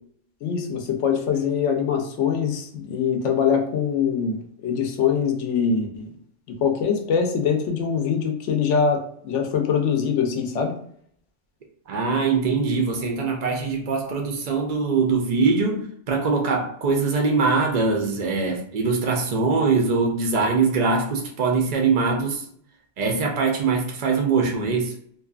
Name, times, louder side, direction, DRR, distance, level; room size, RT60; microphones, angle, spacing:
voice 1, 0.4-6.1 6.5-10.7, left 6 dB, 80° left, 4 dB, 0.9 m, -23 dB
voice 2, 11.9-22.5 23.0-24.9, right 4 dB, 65° right, 1 dB, 0.4 m, -22 dB
2.7 x 2.2 x 2.3 m, 0.63 s
omnidirectional pair, 1.2 m